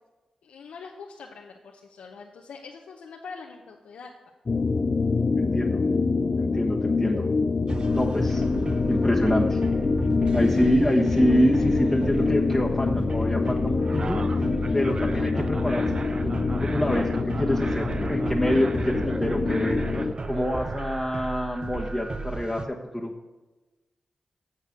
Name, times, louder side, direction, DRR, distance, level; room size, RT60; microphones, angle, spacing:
voice 1, 0.4-4.1, left 5 dB, 90° left, 0 dB, 0.8 m, -43 dB
sound 1, 4.5-20.1, left 4 dB, 45° left, 0.5 m, -25 dB
voice 2, 5.4-5.8 6.4-7.3 7.9-8.4 8.9-9.6 10.3-14.2 14.7-15.9 16.2-16.3 16.6-19.8 20.3-23.1, equal, 5° left, -2 dB, 1.2 m, -26 dB
sound 2, 7.7-22.6, right 3 dB, 40° right, 0.6 m, -34 dB
8.2 x 6.6 x 6.4 m, 1.1 s
cardioid pair, 50°, 2 cm